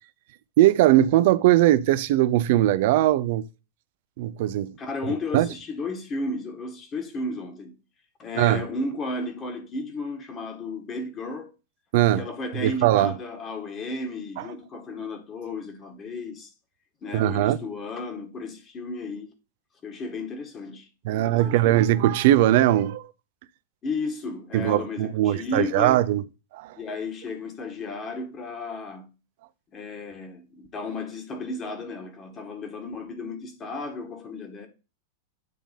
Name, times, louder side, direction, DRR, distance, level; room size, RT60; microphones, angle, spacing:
voice 1, 0.6-3.5 4.2-4.8 5.3-5.5 8.4-8.6 11.9-12.3 12.6-13.1 17.1-17.6 21.0-23.1 24.5-26.2 26.5-26.8, right 14 dB, 60° right, 0.4 m, -20 dB
voice 2, 4.8-7.7 8.2-11.5 12.2-16.5 17.0-19.3 19.8-21.9 23.8-26.0 26.8-29.1 29.7-34.7, left 3 dB, 30° left, 1.9 m, -34 dB
9.3 x 3.4 x 5.4 m
hypercardioid pair, 95°, 0 cm